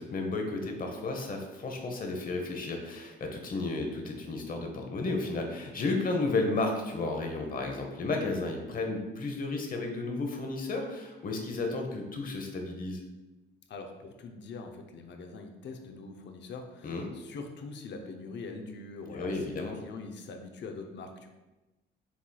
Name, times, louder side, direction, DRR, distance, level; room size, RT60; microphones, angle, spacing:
voice 1, 0.0-13.0 16.8-17.1 19.1-19.8, left 3 dB, 45° left, 3 dB, 0.9 m, -33 dB
voice 2, 13.7-21.3, left 3 dB, 65° left, 4 dB, 0.7 m, -43 dB
7.0 x 3.1 x 2.3 m, 1.1 s
cardioid pair, 90°, 20 cm